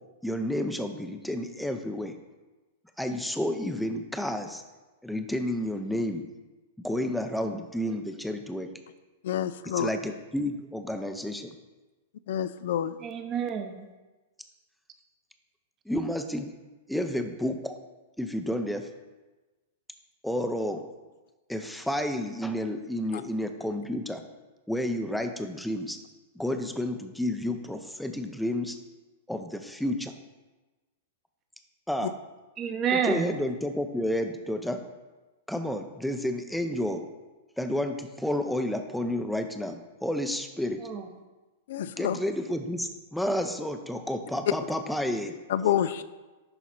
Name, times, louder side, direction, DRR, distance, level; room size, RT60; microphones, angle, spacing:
voice 1, 0.2-2.1 3.0-4.6 5.0-6.2 6.8-8.7 9.7-11.5 15.9-16.5 16.9-17.7 18.2-18.9 20.2-20.8 21.5-24.2 24.7-26.0 26.3-28.8 29.3-30.1 31.9-32.1 32.9-34.8 35.5-37.0 37.6-40.8 42.0-45.3, left 1 dB, ahead, 6 dB, 0.7 m, -30 dB
voice 2, 9.2-9.9 12.3-13.0 23.1-23.2 32.0-32.1 41.7-42.2 45.5-46.0, left 10 dB, 70° left, 14 dB, 0.4 m, -28 dB
voice 3, 13.0-13.9 32.6-33.3 40.8-41.1, right 7 dB, 30° right, 6 dB, 1.0 m, -29 dB
11.0 x 4.1 x 4.3 m, 1.2 s
hypercardioid pair, 130°, 0 cm